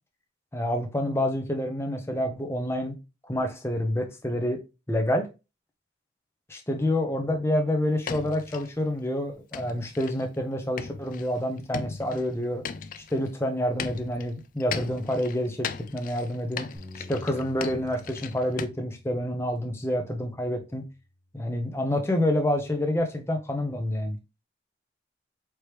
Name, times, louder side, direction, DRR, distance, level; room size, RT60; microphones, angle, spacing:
voice 1, 0.5-2.9 3.3-4.6 4.9-5.3 6.5-12.6 13.1-15.7 15.9-16.7 17.1-20.8 21.3-24.2, left 1 dB, 15° left, 0.8 m, -28 dB
sound 1, 8.1-8.7 9.5-10.4 10.8-13.3 13.8-18.7, left 6 dB, 50° left, 0.3 m, -37 dB
Bass guitar, 16.7-21.2 21.8-23.0, left 1 dB, 15° right, 1.2 m, -50 dB
4.6 x 3.1 x 3.3 m
head